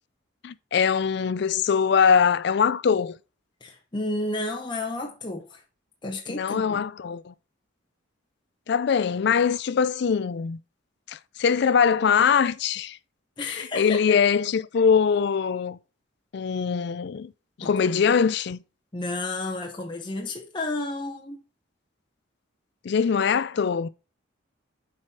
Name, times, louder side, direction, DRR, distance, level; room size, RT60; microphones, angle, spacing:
voice 1, 0.4-3.2 6.3-7.3 8.7-10.6 11.1-13.0 13.4-15.8 16.3-17.3 17.6-18.6 22.8-23.9, left 6 dB, 55° left, 0.4 m, -22 dB
voice 2, 3.6-5.6 6.0-6.8 13.4-14.0 17.6-17.7 18.9-21.4, left 2 dB, 25° left, 0.9 m, -31 dB
7.4 x 4.9 x 4.3 m
head